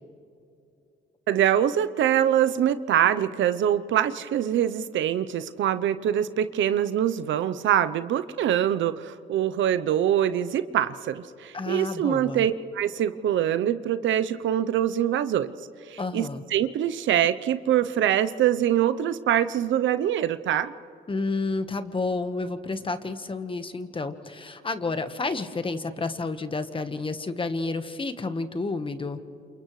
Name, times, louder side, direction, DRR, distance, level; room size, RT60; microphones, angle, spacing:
voice 1, 1.3-15.5 15.9-20.7, right 10 dB, 75° right, 12 dB, 0.7 m, -24 dB
voice 2, 11.5-12.5 16.0-16.4 21.1-29.2, left 3 dB, 25° left, 9 dB, 1.3 m, -30 dB
28.5 x 28.5 x 3.2 m, 2.8 s
cardioid pair, 90°, 20 cm